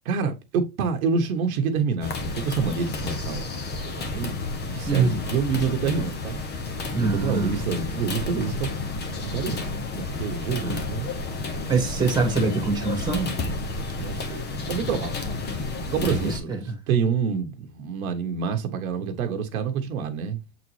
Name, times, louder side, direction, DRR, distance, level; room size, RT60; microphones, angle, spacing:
voice 1, 0.0-6.4 7.0-8.7 9.2-11.1 14.0-15.3 15.9-20.4, right 6 dB, 70° right, 1.3 m, -28 dB
sound 1, 2.0-16.4, left 3 dB, 25° left, 1.1 m, -31 dB
voice 2, 4.9-5.2 6.9-7.6 10.6-10.8 11.7-13.3 16.0-16.8, right 4 dB, 10° right, 1.9 m, -24 dB
7.4 x 4.1 x 3.1 m
hypercardioid pair, 120°, 43 cm